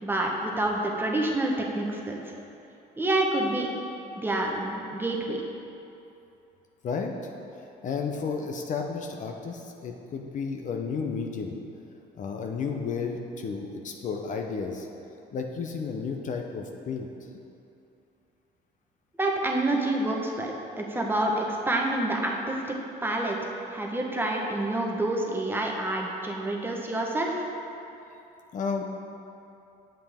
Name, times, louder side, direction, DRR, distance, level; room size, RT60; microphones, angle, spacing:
voice 1, 0.0-2.2 3.0-3.7 4.1-5.4 19.2-22.7 23.0-27.4, right 1 dB, 15° right, -1 dB, 1.0 m, -28 dB
voice 2, 7.8-11.6 12.1-14.9 15.3-17.1 28.5-28.8, left 5 dB, 50° left, 3 dB, 0.7 m, -32 dB
7.6 x 7.6 x 3.5 m, 2.8 s
cardioid pair, 110°, 17 cm